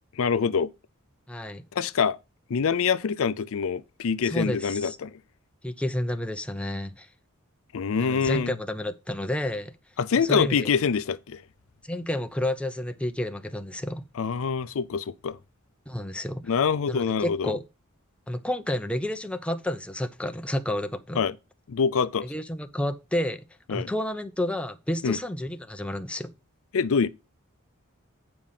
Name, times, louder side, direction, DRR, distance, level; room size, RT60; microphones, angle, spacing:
voice 1, 0.2-0.7 1.7-2.2 2.5-5.1 7.7-8.5 10.0-11.4 14.2-15.4 16.5-17.5 21.2-21.3 21.7-22.3 23.7-23.9 25.0-25.2 26.7-27.1, left 6 dB, 65° left, 0.5 m, -25 dB
voice 2, 1.3-1.6 4.2-5.0 5.6-7.1 8.0-9.7 10.2-10.7 11.8-14.0 15.9-16.4 16.9-17.6 18.3-21.2 22.2-23.4 23.7-26.3, left 1 dB, 5° left, 0.6 m, -30 dB
9.1 x 5.0 x 5.6 m
head